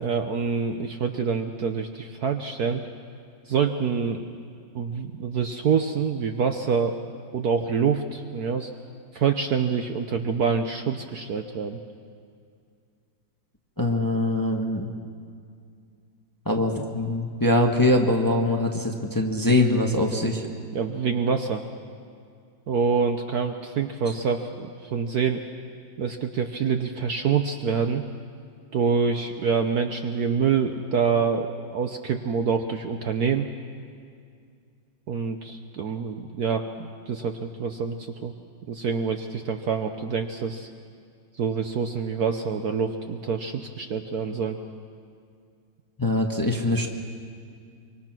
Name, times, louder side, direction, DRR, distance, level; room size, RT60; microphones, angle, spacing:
voice 1, 0.0-2.8 3.5-4.3 4.7-7.0 7.3-8.7 9.1-11.8 20.7-21.6 22.7-25.4 26.0-28.0 28.7-33.5 35.1-38.3 38.7-40.7 41.3-44.6, right 6 dB, 60° right, 6 dB, 1.2 m, -26 dB
voice 2, 13.8-14.9 16.4-20.4 46.0-46.9, left 1 dB, 10° left, 2 dB, 1.2 m, -23 dB
25.0 x 24.0 x 6.1 m, 2.3 s
omnidirectional pair, 2.2 m